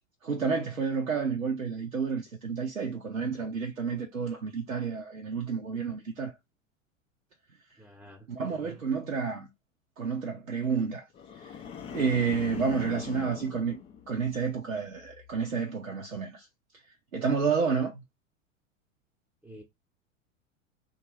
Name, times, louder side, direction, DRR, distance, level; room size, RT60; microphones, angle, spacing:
voice 1, 0.2-6.3 8.3-9.5 10.0-11.1 11.4-11.5 11.9-13.8 14.1-16.5 17.1-18.0, right 5 dB, 85° right, 0.7 m, -30 dB
voice 2, 7.8-8.8 12.4-12.6 19.4-19.6, right 1 dB, 5° right, 0.8 m, -49 dB
sound 1, 11.1-14.6 15.0-15.4, left 7 dB, 15° left, 0.4 m, -41 dB
2.9 x 2.4 x 4.3 m
figure-of-eight pair, 90°, 40 cm